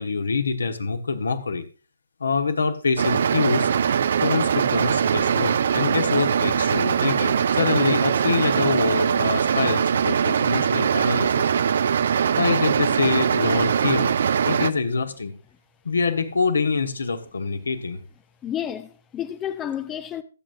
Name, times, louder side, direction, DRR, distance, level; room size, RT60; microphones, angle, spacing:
voice 1, 0.0-1.6 2.2-3.7 4.2-11.5 12.4-14.1 14.4-15.3 15.8-18.0, left 4 dB, 65° left, 1.2 m, -25 dB
sound 1, 3.0-14.7, right 7 dB, 50° right, 0.5 m, -22 dB
voice 2, 18.4-20.2, left 10 dB, 15° left, 0.5 m, -30 dB
22.0 x 7.5 x 2.6 m
figure-of-eight pair, 130°, 0 cm